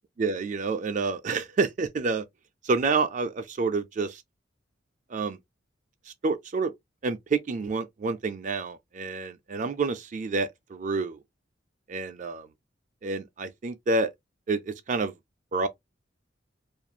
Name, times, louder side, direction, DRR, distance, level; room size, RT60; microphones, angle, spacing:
voice 1, 0.2-2.2 2.6-4.2 5.1-5.4 6.2-6.7 7.0-11.2 11.9-12.4 13.0-14.1 14.5-15.1 15.5-15.7, right 4 dB, 45° right, 0.4 m, -28 dB
2.9 x 2.5 x 2.3 m
head